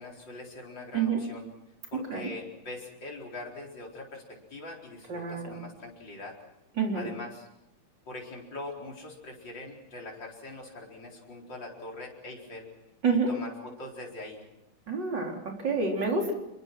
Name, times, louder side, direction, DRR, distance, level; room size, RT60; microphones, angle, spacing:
voice 1, 0.0-1.5 1.9-6.4 6.9-7.5 8.1-12.7 13.3-14.4, left 2 dB, 55° left, -1 dB, 5.1 m, -42 dB
voice 2, 1.9-2.3 5.1-5.6 6.8-7.1 13.0-13.3 14.9-16.3, right 4 dB, 50° right, 1 dB, 4.5 m, -28 dB
26.5 x 23.0 x 6.1 m, 0.88 s
omnidirectional pair, 2.4 m